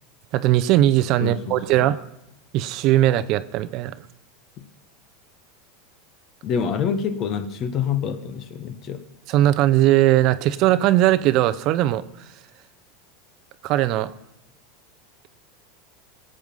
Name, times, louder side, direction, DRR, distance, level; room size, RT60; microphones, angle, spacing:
voice 1, 0.3-2.0 2.5-3.9 9.3-12.0 13.6-14.1, right 14 dB, 50° right, 13 dB, 0.6 m, -19 dB
voice 2, 1.2-1.9 4.6-4.7 6.4-9.0, left 7 dB, 40° left, 11 dB, 1.3 m, -27 dB
18.0 x 7.8 x 5.5 m, 0.85 s
supercardioid pair, 130°, 0 cm